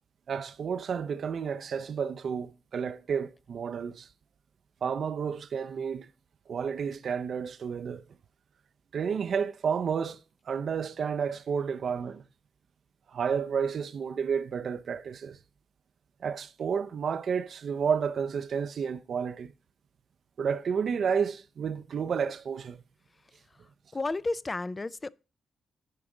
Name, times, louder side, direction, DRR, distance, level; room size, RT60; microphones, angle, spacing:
voice 1, 0.3-4.1 4.8-6.1 6.5-8.0 8.9-10.2 10.5-12.2 13.1-15.4 16.2-19.5 20.4-22.8, right 6 dB, 60° right, 0.5 m, -31 dB
voice 2, 23.9-25.1, left 3 dB, 25° left, 0.3 m, -32 dB
10.0 x 4.8 x 3.8 m
cardioid pair, 95°, 0 cm